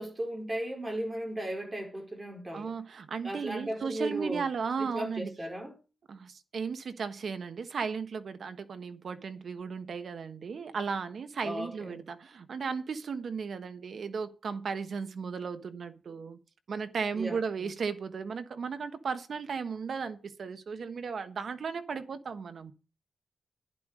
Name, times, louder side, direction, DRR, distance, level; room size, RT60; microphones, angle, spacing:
voice 1, 0.0-2.7 3.2-4.5 4.8-5.8 11.4-12.0 17.1-17.7, right 1 dB, 20° right, 4.6 m, -36 dB
voice 2, 2.5-5.3 6.1-16.4 16.7-22.7, right 5 dB, 60° right, 1.4 m, -35 dB
11.5 x 11.0 x 5.0 m
wide cardioid pair, 120°, 0 cm